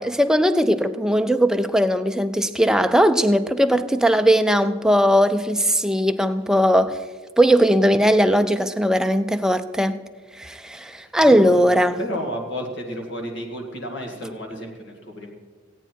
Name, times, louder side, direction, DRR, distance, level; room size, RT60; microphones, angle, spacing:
voice 1, 0.0-7.0 7.4-10.0 10.4-12.0, equal, 5° right, 9 dB, 0.4 m, -19 dB
voice 2, 11.2-15.3, equal, 60° left, 2 dB, 2.0 m, -32 dB
16.5 x 9.0 x 4.6 m, 1.5 s
head